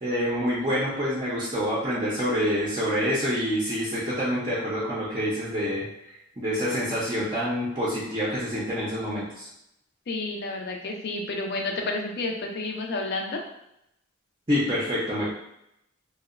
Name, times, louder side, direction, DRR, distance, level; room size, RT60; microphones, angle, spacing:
voice 1, 0.0-5.8 6.4-9.5 14.5-15.3, equal, 20° right, -8 dB, 0.5 m, -27 dB
voice 2, 10.1-13.4, left 2 dB, 50° left, 2 dB, 0.4 m, -30 dB
2.7 x 2.0 x 2.4 m, 0.80 s
head